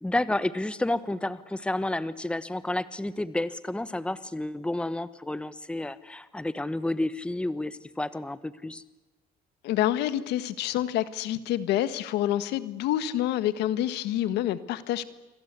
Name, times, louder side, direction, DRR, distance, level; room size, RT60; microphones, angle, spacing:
voice 1, 0.0-8.8, left 1 dB, 5° left, 14 dB, 1.2 m, -30 dB
voice 2, 9.6-15.0, left 12 dB, 85° left, 13 dB, 1.6 m, -27 dB
28.5 x 24.5 x 8.3 m, 1.1 s
cardioid pair, 110°, 17 cm